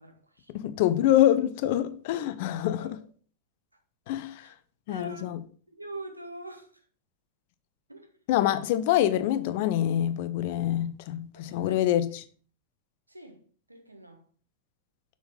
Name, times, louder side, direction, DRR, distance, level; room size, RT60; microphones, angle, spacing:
voice 1, 0.0-0.5 2.8-3.0 4.4-4.5 4.9-5.4 5.7-6.7 7.9-8.1 11.4-11.9 13.1-13.4 13.7-14.2, right 2 dB, 85° right, 1.1 m, -44 dB
voice 2, 0.5-3.0 4.1-4.4 4.9-5.4 8.3-12.2, left 12 dB, 50° left, 0.6 m, -25 dB
7.0 x 5.7 x 3.6 m
figure-of-eight pair, 90°, 0 cm